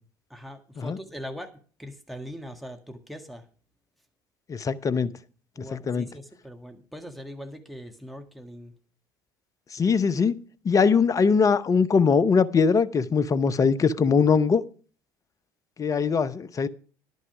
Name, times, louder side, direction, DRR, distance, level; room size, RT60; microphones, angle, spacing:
voice 1, 0.3-3.4 5.6-8.8, equal, ahead, 1.8 m, -41 dB
voice 2, 4.5-5.1 5.7-6.1 9.7-10.4 10.6-14.6 15.8-16.7, left 5 dB, 30° left, 0.7 m, -21 dB
11.0 x 9.3 x 4.8 m
hypercardioid pair, 60°, 10 cm